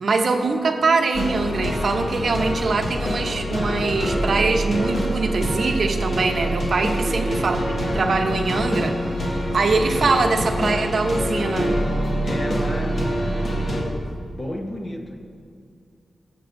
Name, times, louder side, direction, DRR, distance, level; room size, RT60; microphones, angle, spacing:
voice 1, 0.0-7.6 7.9-11.8, right 3 dB, 55° right, 5 dB, 0.8 m, -23 dB
sound 1, 1.1-13.8, equal, 50° left, 2.1 m, -25 dB
voice 2, 7.0-7.9 12.2-15.2, left 1 dB, 30° left, 1 dB, 1.1 m, -33 dB
21.5 x 7.6 x 2.6 m, 2.3 s
wide cardioid pair, 170°, 0 cm